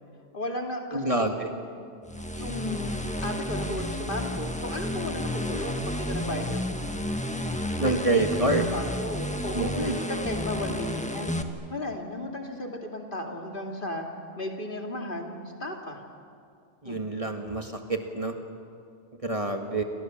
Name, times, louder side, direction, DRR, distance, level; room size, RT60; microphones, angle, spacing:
voice 1, 0.3-1.4 2.3-6.7 7.4-11.3 11.7-14.0 14.4-16.0 16.8-17.0, left 1 dB, 50° left, 2 dB, 2.9 m, -35 dB
voice 2, 0.9-1.5 7.8-8.7 9.5-10.0 16.8-18.4 19.2-19.8, right 2 dB, 30° right, 4 dB, 1.8 m, -27 dB
sound 1, 2.1-11.4, left 1 dB, 5° left, 1.4 m, -31 dB
29.0 x 26.0 x 7.3 m, 2.4 s
omnidirectional pair, 1.1 m